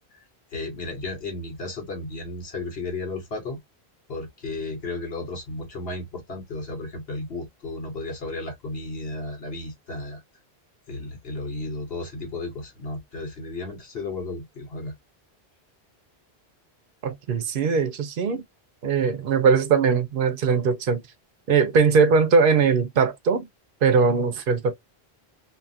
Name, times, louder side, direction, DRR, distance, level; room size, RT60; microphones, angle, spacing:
voice 1, 0.5-3.6 4.1-10.2 10.9-14.9, left 2 dB, 70° left, 1.3 m, -34 dB
voice 2, 17.0-18.4 18.8-21.0 21.5-23.5 23.8-24.8, right 5 dB, 60° right, 0.8 m, -20 dB
2.7 x 2.4 x 2.6 m
omnidirectional pair, 1.1 m